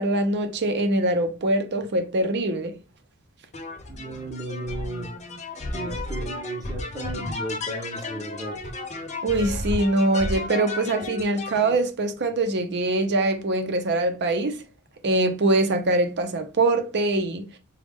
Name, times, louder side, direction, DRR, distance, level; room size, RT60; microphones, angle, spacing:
voice 1, 0.0-2.7 9.2-14.6 15.0-17.4, right 2 dB, 50° right, 0.6 m, -23 dB
sound 1, 3.5-11.7, left 2 dB, 30° left, 0.7 m, -33 dB
voice 2, 3.9-5.1 5.7-8.6, right 2 dB, 15° right, 0.8 m, -35 dB
5.0 x 2.3 x 3.5 m
head